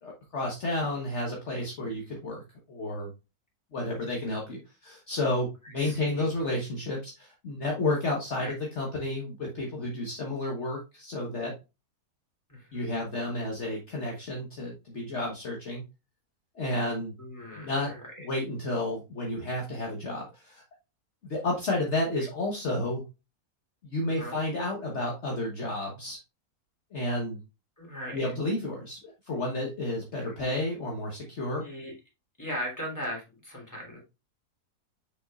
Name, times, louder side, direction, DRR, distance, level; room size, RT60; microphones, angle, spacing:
voice 1, 0.0-2.4 2.7-3.1 3.7-11.5 12.7-15.8 16.5-17.1 17.6-17.9 18.2-20.6 21.2-23.0 23.8-26.2 26.9-27.4 28.1-29.0 29.3-31.6, left 2 dB, 50° left, -1 dB, 1.4 m, -31 dB
voice 2, 5.8-6.3 8.4-8.5 12.5-13.0 17.2-18.3 24.0-24.4 27.8-28.3 30.2-30.3 31.6-31.9 32.4-34.0, equal, 10° left, -3 dB, 3.0 m, -39 dB
6.5 x 6.0 x 2.4 m, 0.26 s
omnidirectional pair, 1.7 m